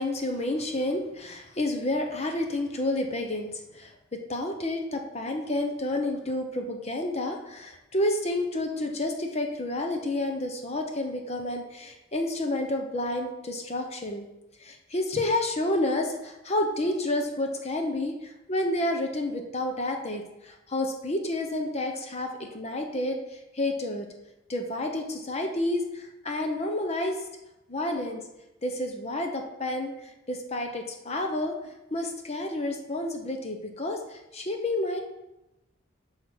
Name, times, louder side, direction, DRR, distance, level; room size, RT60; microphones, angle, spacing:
voice 1, 0.0-14.3 14.6-24.1 24.5-27.2 27.7-28.2 28.6-31.6 31.9-35.0, left 1 dB, 35° left, 4 dB, 0.9 m, -30 dB
8.4 x 5.7 x 4.9 m, 0.96 s
head